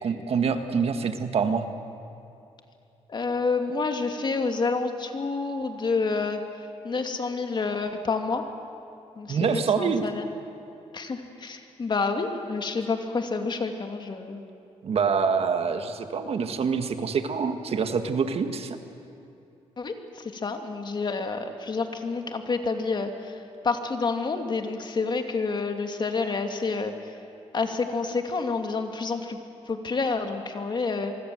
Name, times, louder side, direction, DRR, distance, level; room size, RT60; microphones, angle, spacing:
voice 1, 0.0-1.7 9.3-10.0 14.8-18.8, right 6 dB, 60° right, 7 dB, 1.7 m, -26 dB
voice 2, 3.1-6.4 6.8-8.4 9.2-10.3 10.9-14.4 19.8-23.3 23.6-26.9 27.5-29.4 29.7-31.1, left 4 dB, 40° left, 5 dB, 2.5 m, -28 dB
25.5 x 23.0 x 7.9 m, 2.7 s
cardioid pair, 95°, 12 cm